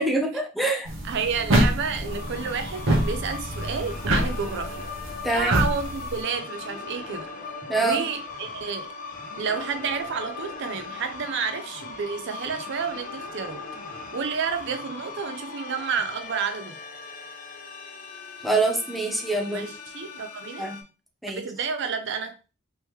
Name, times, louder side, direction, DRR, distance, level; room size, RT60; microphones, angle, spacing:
voice 1, 0.0-0.9 5.2-5.5 7.7-8.0 18.4-19.7 20.6-20.8 21.2-21.4, right 2 dB, ahead, 0.6 m, -25 dB
sound 1, 0.9-6.2, equal, 85° right, 1.1 m, -26 dB
voice 2, 1.0-4.9 5.3-7.3 7.8-8.9 9.4-13.6 14.1-16.8 19.5-20.7 21.3-22.3, right 6 dB, 60° right, 0.5 m, -30 dB
sound 2, 1.9-20.8, left 4 dB, 40° left, 0.6 m, -39 dB
3.4 x 3.0 x 3.1 m
head